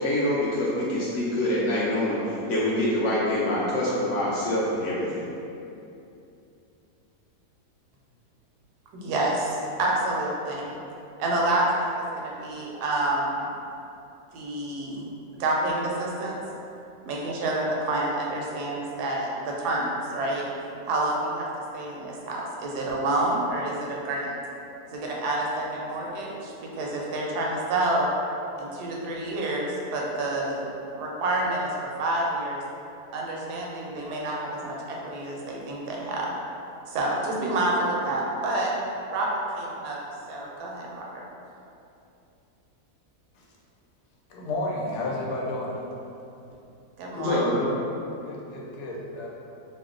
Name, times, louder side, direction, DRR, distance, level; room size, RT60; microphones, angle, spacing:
voice 1, 0.0-5.3 47.2-47.7, left 1 dB, 70° left, -7 dB, 0.7 m, -25 dB
voice 2, 8.9-10.7 11.2-13.5 14.3-15.1 15.4-16.4 17.1-20.5 20.8-21.5 21.7-24.3 24.9-28.1 28.6-30.7 30.9-31.7 32.0-32.6 33.1-36.3 36.9-38.7 39.1-40.0 40.3-41.2 47.0-47.4, right 2 dB, 80° right, -3 dB, 1.1 m, -28 dB
voice 3, 44.3-45.7 48.2-49.3, left 2 dB, 85° left, -4 dB, 1.1 m, -31 dB
2.9 x 2.0 x 3.7 m, 2.7 s
omnidirectional pair, 1.7 m